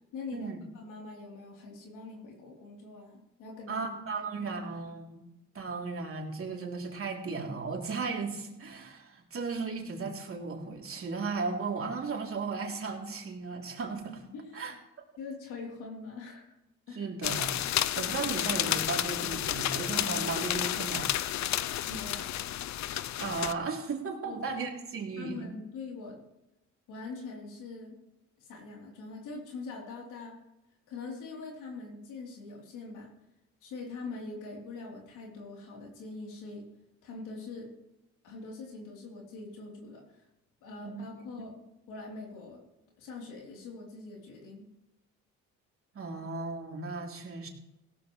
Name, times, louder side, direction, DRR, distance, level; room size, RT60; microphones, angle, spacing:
voice 1, 0.1-3.9 4.1-4.5 14.3-14.6 15.2-16.5 16.9-17.1 21.9-22.4 24.2-24.4 25.2-26.2 26.9-28.0 28.4-30.4 30.9-33.1 33.6-36.7 37.0-37.7 38.2-40.2 40.6-41.5 41.9-42.6 43.0-44.7, left 3 dB, 90° left, -1 dB, 3.5 m, -43 dB
voice 2, 3.7-5.2 5.5-14.2 14.5-14.7 16.9-21.2 23.2-25.5 40.8-41.1 45.9-47.5, right 4 dB, 45° right, 0 dB, 3.1 m, -35 dB
sound 1, 17.2-23.5, left 12 dB, 65° left, 0.6 m, -31 dB
16.5 x 13.5 x 3.2 m, 0.92 s
cardioid pair, 90°, 30 cm